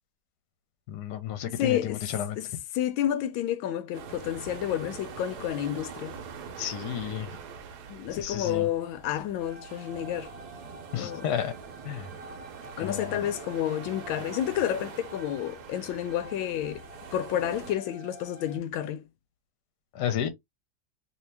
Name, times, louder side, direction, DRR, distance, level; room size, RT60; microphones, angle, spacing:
voice 1, 0.9-2.4 6.6-7.3 8.1-8.7 10.9-11.5 11.8-12.1 12.8-13.2 19.9-20.3, left 9 dB, 65° left, 1.2 m, -32 dB
voice 2, 1.4-2.1 2.3-6.2 7.9-10.3 10.9-11.3 12.8-16.8 17.1-19.0, left 11 dB, 85° left, 1.3 m, -30 dB
sound 1, 3.9-17.7, right 6 dB, 65° right, 1.1 m, -44 dB
sound 2, 9.4-18.6, equal, 30° right, 0.7 m, -50 dB
3.0 x 2.7 x 3.3 m
omnidirectional pair, 2.1 m